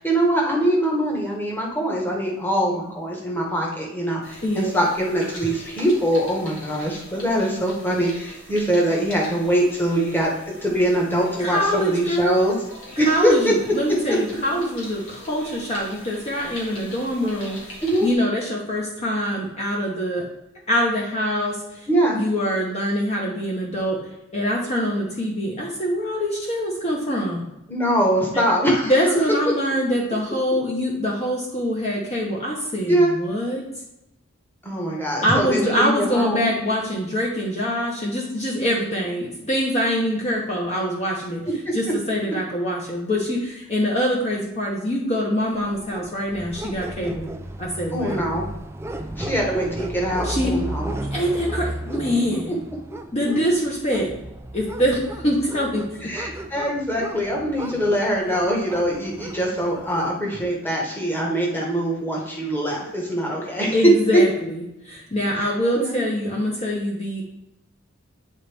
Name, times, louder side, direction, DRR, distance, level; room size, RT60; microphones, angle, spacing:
voice 1, 0.0-12.5 13.0-13.5 14.1-14.2 17.8-18.1 21.9-22.2 27.7-28.9 32.9-33.1 34.6-36.5 47.9-48.4 49.2-50.9 56.1-63.8 64.1-64.2 65.3-66.0, equal, 10° left, -2 dB, 1.2 m, -23 dB
sound 1, 4.2-18.1, left 1 dB, 75° left, 2.0 m, -42 dB
voice 2, 11.4-12.5 13.0-17.8 18.0-20.2 20.7-21.9 22.1-24.0 24.3-27.5 28.8-33.6 35.2-41.4 41.7-47.3 47.6-48.3 50.2-50.5 51.1-52.5 53.1-54.1 54.5-56.1 63.7-67.2, equal, 30° left, -2 dB, 1.0 m, -24 dB
sound 2, 45.6-60.2, right 1 dB, 10° right, 0.3 m, -34 dB
8.8 x 4.0 x 3.4 m, 0.87 s
head